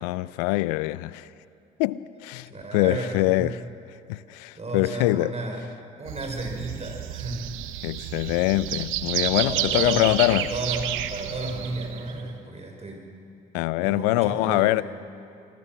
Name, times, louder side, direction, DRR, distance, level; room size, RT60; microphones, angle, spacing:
voice 1, 0.0-1.3 1.8-3.6 4.1-5.3 7.8-10.5 13.5-14.8, left 19 dB, 80° left, 0.5 m, -24 dB
voice 2, 2.5-3.6 4.5-5.7 6.0-7.5 8.0-8.1 9.4-13.0 13.8-14.8, right 2 dB, 30° right, 6.1 m, -33 dB
sound 1, 6.1-12.2, right 12 dB, 75° right, 1.0 m, -31 dB
27.5 x 20.5 x 6.2 m
hypercardioid pair, 55°, 21 cm